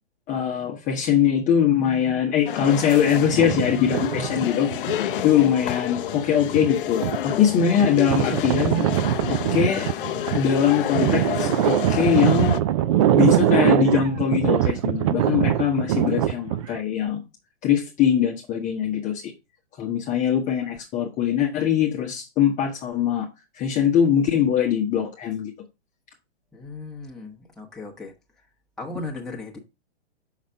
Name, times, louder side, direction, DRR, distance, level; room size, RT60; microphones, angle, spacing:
voice 1, 0.3-8.8 9.3-9.9 10.3-12.5 13.1-17.2 17.6-19.3 19.8-23.3 23.5-25.5, left 8 dB, 25° left, 1.1 m, -22 dB
sound 1, 2.5-12.6, left 11 dB, 55° left, 0.6 m, -29 dB
sound 2, 3.2-5.4 6.0-16.8, right 12 dB, 30° right, 0.4 m, -23 dB
voice 2, 26.5-28.1 28.8-29.6, left 3 dB, ahead, 1.3 m, -36 dB
6.3 x 5.8 x 3.5 m
hypercardioid pair, 135°, 33 cm